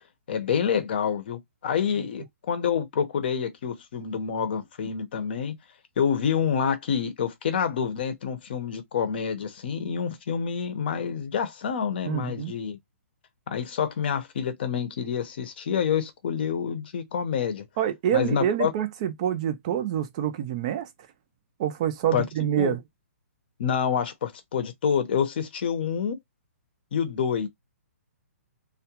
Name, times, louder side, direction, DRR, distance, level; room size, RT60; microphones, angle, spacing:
voice 1, 0.3-5.5 6.0-12.8 13.5-17.6 18.1-18.7 22.1-22.2 22.6-22.7 23.6-26.2 26.9-27.5, left 7 dB, 40° left, 0.7 m, -27 dB
voice 2, 12.1-12.5 17.8-20.9 21.6-22.8, right 10 dB, 25° right, 0.4 m, -26 dB
2.3 x 2.1 x 2.8 m
hypercardioid pair, 165°, 8 cm